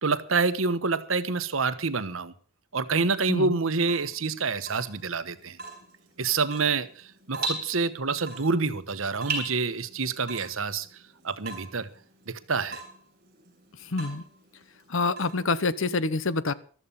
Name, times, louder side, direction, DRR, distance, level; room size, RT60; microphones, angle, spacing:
voice 1, 0.0-2.3 2.7-5.6 6.2-10.9 11.2-11.9 12.3-12.8, right 4 dB, 75° right, 1.1 m, -27 dB
Water tap faucet / Drip, 3.7-15.9, right 3 dB, 45° right, 6.8 m, -40 dB
voice 2, 13.9-14.2 14.9-16.5, left 3 dB, 70° left, 1.0 m, -26 dB
14.5 x 13.0 x 5.6 m
head